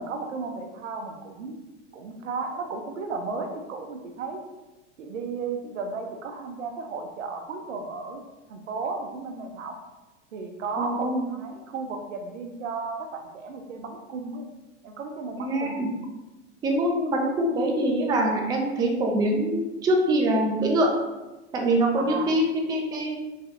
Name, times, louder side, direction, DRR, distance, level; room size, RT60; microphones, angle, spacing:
voice 1, 0.0-1.6 1.9-4.4 5.0-8.2 8.5-9.8 10.3-14.5 14.8-15.9 22.0-22.4, right 4 dB, 90° right, 5 dB, 0.6 m, -34 dB
voice 2, 10.8-11.2 15.4-15.9 16.6-20.9 21.5-23.2, right 1 dB, 10° right, 0 dB, 0.3 m, -24 dB
3.1 x 2.7 x 2.5 m, 1.1 s
hypercardioid pair, 105°, 36 cm